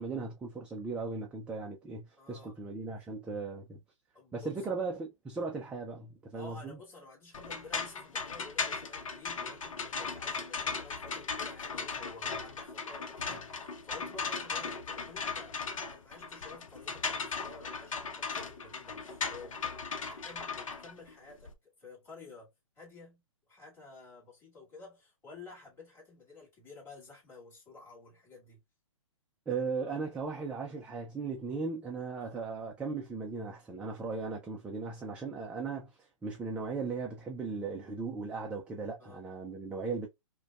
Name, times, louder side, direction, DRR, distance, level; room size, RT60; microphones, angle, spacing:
voice 1, 0.0-3.8 4.3-6.8 29.5-35.9 36.2-40.1, right 4 dB, 5° right, 0.4 m, -37 dB
voice 2, 2.2-2.6 3.5-3.7 4.1-4.7 6.3-23.2 23.5-28.6 32.2-32.4 39.0-39.2, left 3 dB, 15° left, 2.3 m, -52 dB
sound 1, 7.3-21.5, left 5 dB, 75° left, 0.8 m, -37 dB
5.0 x 2.2 x 2.3 m
hypercardioid pair, 140°, 17 cm